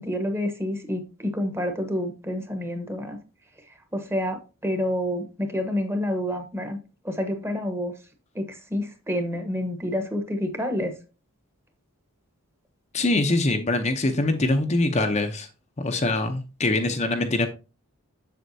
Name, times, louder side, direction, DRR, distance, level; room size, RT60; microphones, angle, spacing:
voice 1, 0.0-3.2 3.9-6.8 7.0-8.0 8.3-10.9, left 1 dB, 10° right, 1.2 m, -28 dB
voice 2, 12.9-15.5 15.8-17.5, left 2 dB, 30° left, 0.7 m, -23 dB
7.8 x 7.1 x 2.7 m
head